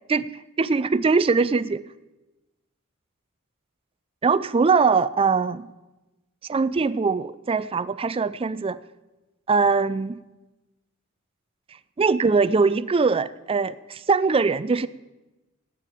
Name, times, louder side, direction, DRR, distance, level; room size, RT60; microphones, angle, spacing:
voice 1, 0.6-1.8 4.2-5.7 6.5-8.8 9.5-10.2 12.0-14.9, right 4 dB, 25° right, 16 dB, 0.4 m, -22 dB
13.0 x 9.3 x 8.8 m, 1.1 s
head